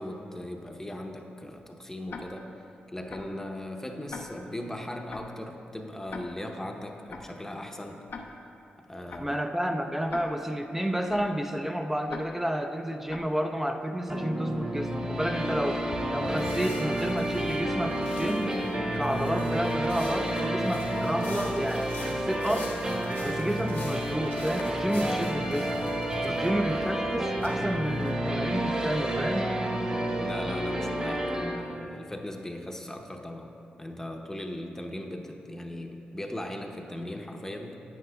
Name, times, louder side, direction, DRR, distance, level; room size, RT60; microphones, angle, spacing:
voice 1, 0.0-2.5 2.9-8.0 8.8-9.4 26.2-26.4 30.2-33.5 33.8-37.8, left 1 dB, 15° left, 3 dB, 0.8 m, -38 dB
Tick-tock, 2.1-2.2 3.1-3.2 4.1-4.2 5.1-5.2 6.1-6.2 7.1-7.2 8.1-8.2 9.1-9.2 10.1-10.2 11.1-11.2 12.1-12.2 13.1-13.2, left 5 dB, 70° left, 0.6 m, -40 dB
voice 2, 9.2-15.8 16.1-18.5 19.0-22.7 23.2-25.7 26.2-29.5, equal, 10° right, 5 dB, 0.5 m, -30 dB
sound 1, 14.1-31.6, right 1 dB, 25° right, 1.3 m, -30 dB
sound 2, 15.9-28.1, left 2 dB, 90° left, 1.7 m, -44 dB
9.6 x 9.0 x 2.3 m, 2.9 s
cardioid pair, 60°, 4 cm